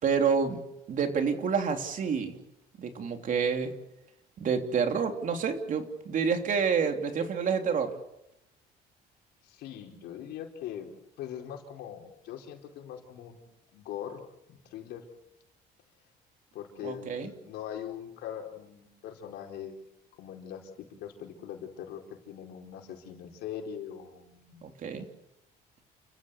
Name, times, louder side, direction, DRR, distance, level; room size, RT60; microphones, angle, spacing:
voice 1, 0.0-0.6 0.9-2.4 2.8-3.7 4.4-7.9 16.8-17.3 24.6-25.0, right 6 dB, 50° right, 5 dB, 3.4 m, -28 dB
voice 2, 9.4-10.9 11.2-13.4 13.7-14.2 14.5-15.0 16.5-19.9 20.2-20.7 21.0-24.6, left 9 dB, 80° left, 2 dB, 4.8 m, -41 dB
30.0 x 14.5 x 8.2 m, 0.86 s
cardioid pair, 110°, 17 cm